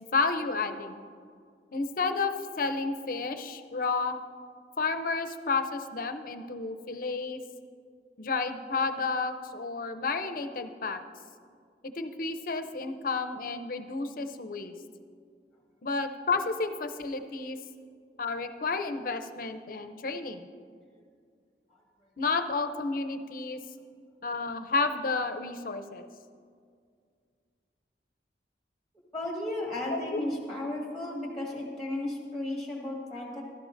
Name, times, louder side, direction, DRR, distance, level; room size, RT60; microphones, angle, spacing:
voice 1, 0.1-1.0 1.7-4.2 4.8-7.4 8.2-11.0 11.8-14.7 15.8-17.6 18.2-20.5 22.2-23.6 24.2-26.1 29.9-30.2, left 4 dB, 50° left, 9 dB, 0.6 m, -31 dB
voice 2, 29.1-33.4, left 1 dB, ahead, -2 dB, 1.7 m, -34 dB
15.5 x 12.5 x 2.6 m, 2.2 s
head